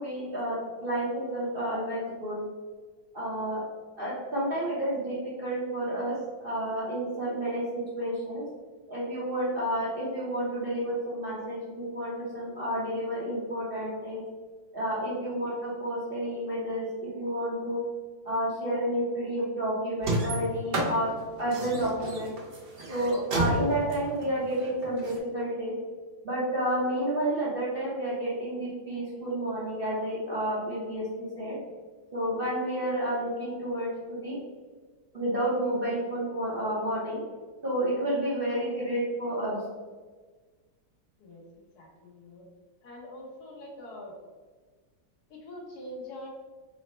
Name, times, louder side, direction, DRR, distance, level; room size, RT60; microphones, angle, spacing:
voice 1, 0.0-2.4 3.1-3.6 4.0-8.4 8.9-14.2 14.7-16.9 17.2-17.8 18.2-21.1 21.4-22.3 22.9-25.7 26.2-31.6 32.1-34.4 35.1-37.2 37.6-39.6, right 1 dB, 45° right, -8 dB, 0.7 m, -30 dB
sound 1, 20.0-25.2, right 2 dB, 85° right, 0.5 m, -31 dB
voice 2, 41.8-42.4 42.8-44.2 45.3-46.3, left 1 dB, 65° left, -1 dB, 1.3 m, -44 dB
3.9 x 2.1 x 4.1 m, 1.4 s
omnidirectional pair, 2.0 m